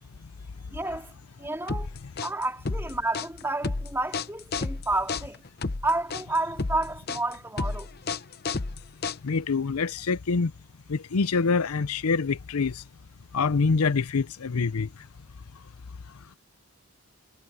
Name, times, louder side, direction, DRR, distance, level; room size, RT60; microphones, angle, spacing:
voice 1, 0.7-1.1 1.4-1.9 2.2-5.4 5.8-7.9, right 2 dB, 10° right, 3.7 m, -30 dB
sound 1, 1.7-9.5, left 3 dB, 45° left, 0.8 m, -31 dB
voice 2, 9.2-10.5 10.9-12.8 13.3-14.9, left 4 dB, 90° left, 0.6 m, -25 dB
head